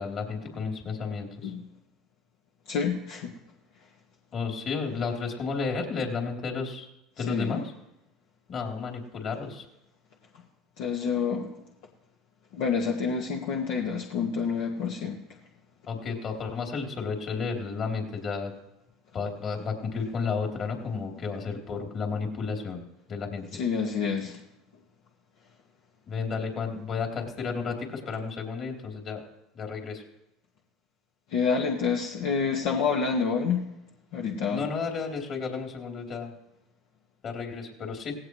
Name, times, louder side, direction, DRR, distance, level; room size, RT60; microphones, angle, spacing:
voice 1, 0.0-1.5 4.3-6.9 7.2-7.6 8.5-9.6 15.9-18.5 19.1-22.8 23.1-23.4 26.1-29.2 29.5-30.0 34.5-36.3 37.2-38.2, left 5 dB, 45° left, 1 dB, 3.4 m, -32 dB
voice 2, 2.7-3.3 7.2-7.5 10.8-11.5 12.5-15.2 23.5-24.4 31.3-33.6 34.1-34.6, left 5 dB, 65° left, 0 dB, 1.6 m, -28 dB
17.0 x 17.0 x 3.2 m, 0.90 s
hypercardioid pair, 85°, 0 cm